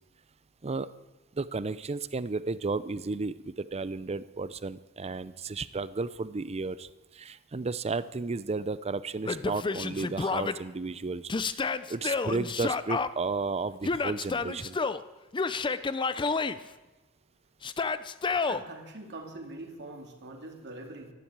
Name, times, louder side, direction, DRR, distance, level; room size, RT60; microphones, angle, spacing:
voice 1, 1.3-14.8, right 3 dB, 30° right, 16 dB, 0.5 m, -33 dB
Yell, 9.3-10.5 11.3-13.1 13.8-15.0 15.3-16.6 17.6-18.6, left 4 dB, 20° left, 0.5 m, -29 dB
voice 2, 18.5-21.1, right 2 dB, 50° right, 2 dB, 2.5 m, -43 dB
13.0 x 12.0 x 8.7 m, 1.1 s
head